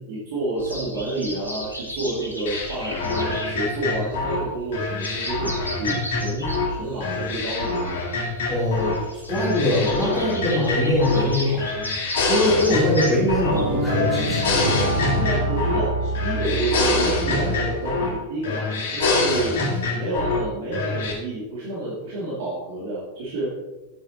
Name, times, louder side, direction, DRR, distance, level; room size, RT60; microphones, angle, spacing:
voice 1, 0.0-5.5 5.8-7.9 15.2-19.6 19.9-23.5, right 2 dB, 50° right, -7 dB, 2.5 m, -29 dB
sound 1, 0.6-14.7, equal, 85° left, 1.5 m, -37 dB
sound 2, 2.5-6.7 7.0-9.0 9.3-11.3 11.6-13.6 13.9-18.2 18.4-20.4 20.7-21.1, left 3 dB, 55° left, 2.0 m, -25 dB
voice 2, 8.5-14.7, left 1 dB, ahead, -9 dB, 3.4 m, -22 dB
sound 3, 13.5-18.0, right 1 dB, 70° right, 2.1 m, -26 dB
9.6 x 8.8 x 3.0 m, 1.1 s
figure-of-eight pair, 90°, 0 cm